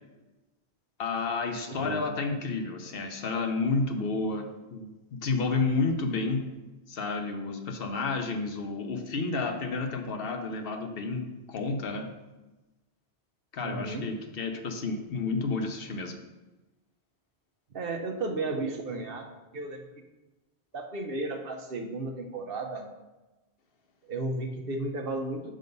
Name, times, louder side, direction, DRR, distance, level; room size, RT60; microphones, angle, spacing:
voice 1, 1.0-6.4 6.9-12.1 13.5-16.1, left 3 dB, 60° left, 5 dB, 0.9 m, -31 dB
voice 2, 1.7-2.0 13.6-14.1 17.7-19.3 19.5-19.8 20.7-22.9 24.1-25.5, right 2 dB, 60° right, 3 dB, 1.0 m, -33 dB
6.6 x 3.8 x 5.2 m, 1.1 s
omnidirectional pair, 1.1 m